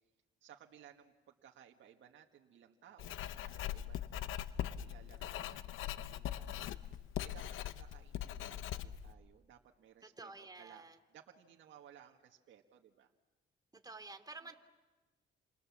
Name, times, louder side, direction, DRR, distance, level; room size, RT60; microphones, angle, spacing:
voice 1, 0.4-10.3 10.6-10.8 11.1-13.1 14.4-14.5, right 9 dB, 70° right, 2 dB, 1.8 m, -61 dB
Writing, 3.0-9.1, left 11 dB, 85° left, 0.9 m, -41 dB
voice 2, 10.0-11.0 13.7-14.6, right 3 dB, 20° right, 6 dB, 2.8 m, -50 dB
29.5 x 26.5 x 7.4 m, 1.2 s
cardioid pair, 90°, 20 cm